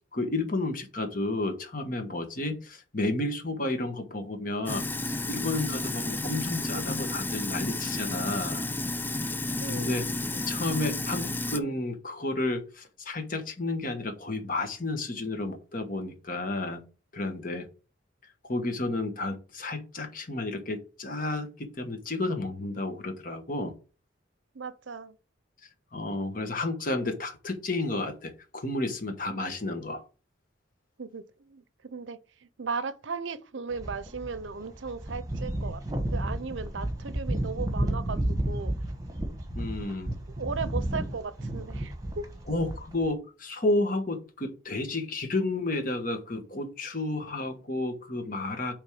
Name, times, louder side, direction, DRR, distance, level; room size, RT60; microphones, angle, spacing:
voice 1, 0.1-4.9 5.3-8.7 9.7-10.1 10.5-16.8 17.1-17.7 18.2-23.7 25.9-30.0 39.5-40.1 42.5-48.7, left 2 dB, 45° left, 1.3 m, -31 dB
Sink (filling or washing), 4.7-11.6, left 2 dB, 10° left, 0.3 m, -32 dB
voice 2, 9.6-9.9 10.3-10.4 24.5-25.2 31.0-35.8 36.1-38.7 40.4-42.3, right 4 dB, 70° right, 0.7 m, -37 dB
sound 1, 33.7-43.1, right 1 dB, 15° right, 1.3 m, -32 dB
9.0 x 3.6 x 5.0 m
head